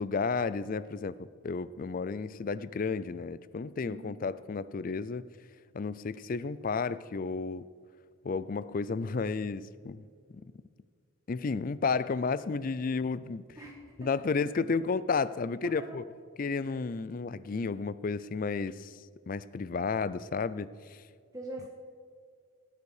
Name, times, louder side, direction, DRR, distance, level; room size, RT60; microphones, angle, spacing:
voice 1, 0.0-5.2 5.7-7.7 8.2-10.1 10.3-10.4 11.3-13.4 14.0-16.0 16.4-21.0, left 4 dB, 40° left, 0.4 m, -32 dB
voice 2, 3.8-4.2 13.6-14.2 15.6-16.0 16.6-16.8 21.3-21.7, right 1 dB, 15° right, 1.4 m, -44 dB
17.5 x 9.6 x 4.9 m
head